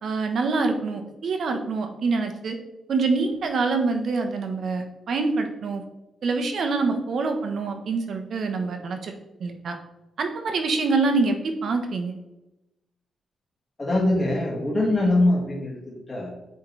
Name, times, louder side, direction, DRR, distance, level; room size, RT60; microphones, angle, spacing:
voice 1, 0.0-2.6 2.9-5.8 6.2-9.1 9.4-9.8 10.2-12.2, right 3 dB, 60° right, 5 dB, 0.9 m, -25 dB
voice 2, 13.8-15.8 16.1-16.3, left 1 dB, 25° left, -5 dB, 1.9 m, -22 dB
8.1 x 3.8 x 3.2 m, 0.96 s
cardioid pair, 110°, 0 cm